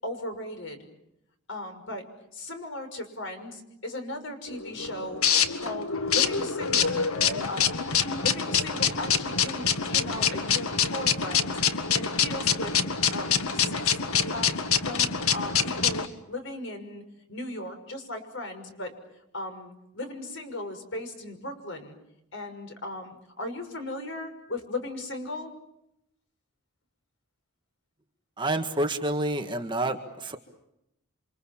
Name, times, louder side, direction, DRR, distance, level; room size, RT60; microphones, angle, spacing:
voice 1, 0.0-0.8 1.5-2.0 2.3-5.2 5.5-7.0 7.4-11.6 11.9-12.8 13.1-14.5 14.8-17.0 17.3-18.9 19.3-22.0 22.3-25.5, left 2 dB, 55° left, 6 dB, 6.1 m, -37 dB
sound 1, 4.5-16.1, left 7 dB, 80° left, 1.9 m, -26 dB
voice 2, 28.4-30.4, right 1 dB, 20° right, 5 dB, 1.8 m, -28 dB
29.0 x 26.0 x 7.3 m, 0.81 s
head